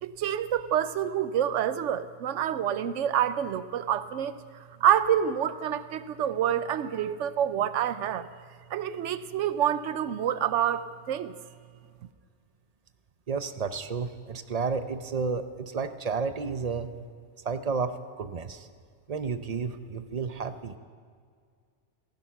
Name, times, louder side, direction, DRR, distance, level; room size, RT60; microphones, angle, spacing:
voice 1, 0.0-4.4 4.8-8.3 8.7-11.3, right 9 dB, 90° right, 13 dB, 1.0 m, -27 dB
voice 2, 13.3-16.9 17.4-18.7 19.1-20.8, right 5 dB, 40° right, 10 dB, 0.7 m, -31 dB
16.0 x 14.5 x 5.9 m, 2.1 s
omnidirectional pair, 1.2 m